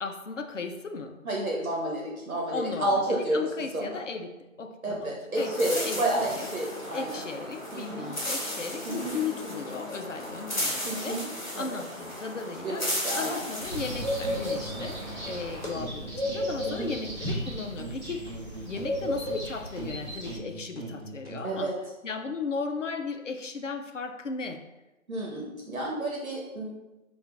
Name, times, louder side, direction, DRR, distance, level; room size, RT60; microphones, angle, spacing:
voice 1, 0.0-1.2 2.5-5.1 5.4-6.5 6.9-11.2 11.5-12.9 13.2-18.3 18.6-21.7 22.0-24.6, left 4 dB, 60° left, 6 dB, 0.5 m, -36 dB
voice 2, 1.2-3.5 3.7-4.0 4.8-7.2 7.7-8.1 8.8-9.2 10.8-11.3 11.6-11.8 12.6-13.4 16.6-17.0 21.4-21.7 25.1-26.7, right 1 dB, 70° right, -2 dB, 1.2 m, -30 dB
sound 1, 5.4-15.7, left 1 dB, 35° left, 1.0 m, -35 dB
sound 2, 13.6-20.4, equal, 20° right, 1.2 m, -34 dB
sound 3, 13.7-15.4 15.7-17.5 17.8-21.5, right 2 dB, 45° right, 0.9 m, -41 dB
5.3 x 2.4 x 3.7 m, 1.0 s
figure-of-eight pair, 180°, 42 cm